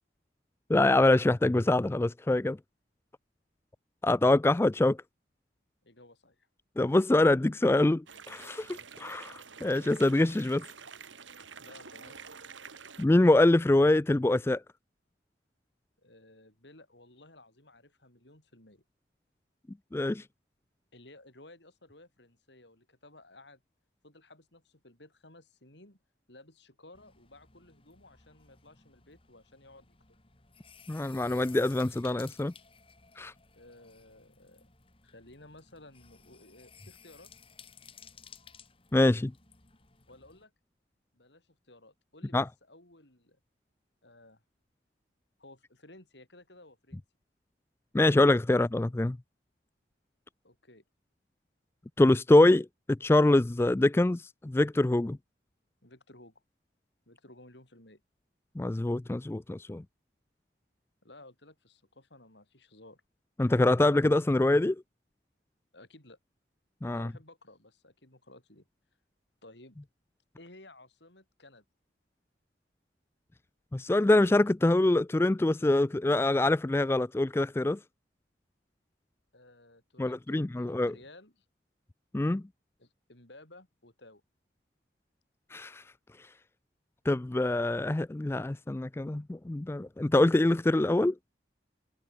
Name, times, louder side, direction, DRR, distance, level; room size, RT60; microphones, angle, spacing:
voice 1, 0.7-2.6 4.0-5.0 6.8-10.6 13.0-14.6 19.9-20.2 30.9-32.5 33.2-33.3 38.9-39.3 42.3-42.5 47.9-49.2 52.0-55.2 58.6-59.8 63.4-64.8 66.8-67.1 73.7-77.8 80.0-80.9 82.1-82.4 85.5-85.8 87.1-91.1, left 2 dB, 15° left, 0.3 m, -25 dB
voice 2, 5.8-6.5 11.6-12.2 16.0-18.8 20.9-23.6 24.0-26.0 26.3-30.2 33.5-34.7 35.0-37.3 40.1-40.5 41.1-43.4 44.0-44.4 45.4-47.0 50.4-50.8 55.8-56.4 57.1-58.0 61.0-63.0 65.7-66.2 66.9-68.7 69.4-69.8 70.4-71.6 79.3-81.5 82.8-84.2, left 2 dB, 70° left, 5.8 m, -55 dB
sound 1, 8.1-13.0, right 6 dB, 90° right, 3.4 m, -48 dB
sound 2, 26.9-40.4, left 7 dB, 30° left, 2.1 m, -57 dB
head